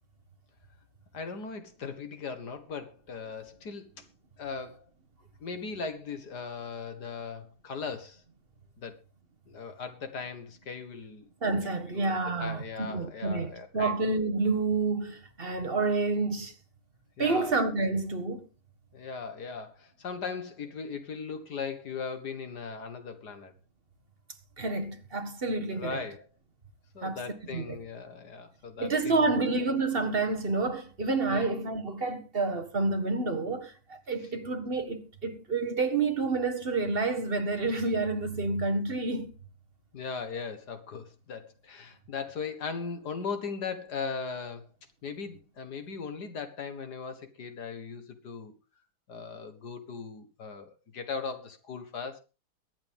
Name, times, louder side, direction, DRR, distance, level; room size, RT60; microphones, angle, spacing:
voice 1, 1.1-4.0 4.4-4.8 5.4-8.2 8.8-8.9 9.5-11.3 11.9-13.9 17.2-17.5 18.9-23.5 25.7-26.3 26.9-29.4 31.3-31.5 39.9-44.7 45.0-48.5 49.1-52.2, left 5 dB, 55° left, 2.1 m, -38 dB
voice 2, 11.4-16.5 17.2-18.5 24.6-26.0 27.0-27.2 27.5-27.8 28.8-39.3, right 3 dB, 30° right, 1.5 m, -29 dB
23.0 x 8.8 x 3.6 m
omnidirectional pair, 2.3 m